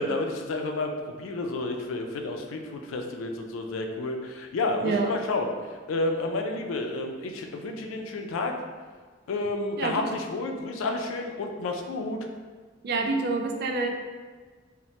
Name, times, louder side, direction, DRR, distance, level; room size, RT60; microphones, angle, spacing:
voice 1, 0.0-8.5 9.3-12.2, left 2 dB, 85° left, 4 dB, 0.4 m, -30 dB
voice 2, 12.8-13.9, right 3 dB, 55° right, 3 dB, 0.3 m, -27 dB
3.1 x 2.1 x 2.7 m, 1.5 s
head